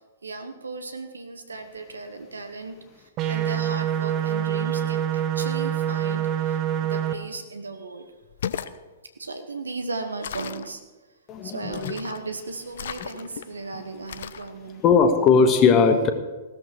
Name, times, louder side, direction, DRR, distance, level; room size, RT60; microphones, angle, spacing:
voice 1, 0.2-8.1 9.2-10.8 11.4-14.8, right 3 dB, 75° right, 7 dB, 1.2 m, -36 dB
sound 1, 3.2-7.1, right 10 dB, 30° right, 1.2 m, -25 dB
sound 2, 8.2-8.8 10.2-10.7 11.7-12.2 12.7-13.4 14.1-14.5, left 8 dB, 60° left, 0.7 m, -35 dB
voice 2, 11.3-11.9 13.7-13.8 14.8-16.1, left 5 dB, 30° left, 7 dB, 1.7 m, -18 dB
16.5 x 13.5 x 4.8 m, 1.2 s
figure-of-eight pair, 105°, 0 cm